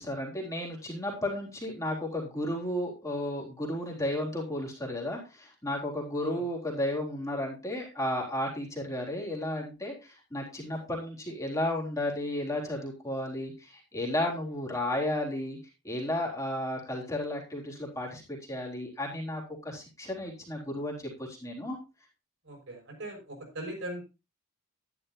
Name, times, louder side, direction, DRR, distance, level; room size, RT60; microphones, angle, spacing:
voice 1, 0.0-15.6 15.8-21.8, left 1 dB, 15° left, -2 dB, 3.7 m, -33 dB
voice 2, 22.5-24.0, right 1 dB, 60° right, 2 dB, 6.5 m, -40 dB
12.5 x 11.5 x 2.7 m, 0.28 s
head